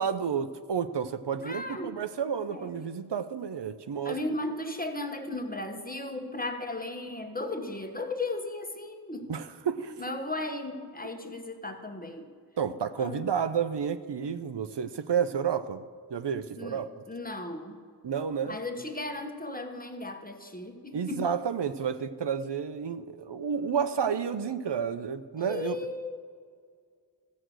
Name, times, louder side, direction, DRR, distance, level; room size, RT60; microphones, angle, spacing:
voice 1, 0.0-4.2 9.3-10.0 12.6-15.8 16.1-17.0 18.0-18.6 20.9-25.8, right 7 dB, 85° right, 12 dB, 0.6 m, -31 dB
voice 2, 1.4-2.0 2.5-2.7 4.0-9.3 9.9-12.3 13.0-13.3 16.6-17.8 18.4-21.3 25.4-26.2, left 2 dB, 20° left, 5 dB, 1.1 m, -36 dB
14.0 x 6.4 x 7.7 m, 2.1 s
wide cardioid pair, 50°, 41 cm